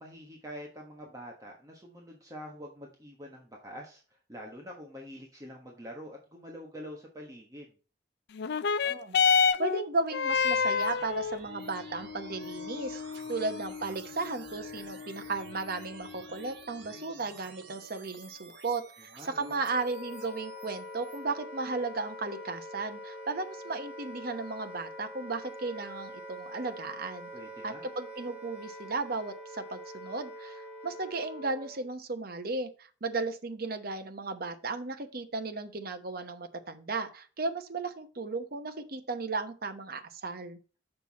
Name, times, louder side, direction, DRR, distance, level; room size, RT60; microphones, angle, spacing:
voice 1, 0.0-7.7 19.2-19.6 27.3-27.9, equal, 20° right, -1 dB, 1.3 m, -46 dB
sound 1, 8.3-17.3 18.1-18.2, left 6 dB, 60° left, 0.4 m, -31 dB
voice 2, 8.8-9.2 9.6-13.0 13.3-27.3 27.6-40.6, right 3 dB, 55° right, 7 dB, 0.9 m, -35 dB
sound 2, 10.3-21.2, right 4 dB, 80° right, 2.1 m, -52 dB
Wind instrument woodwind instrument, 19.2-31.9, left 1 dB, 40° left, 3.5 m, -44 dB
6.8 x 5.8 x 4.1 m, 0.37 s
head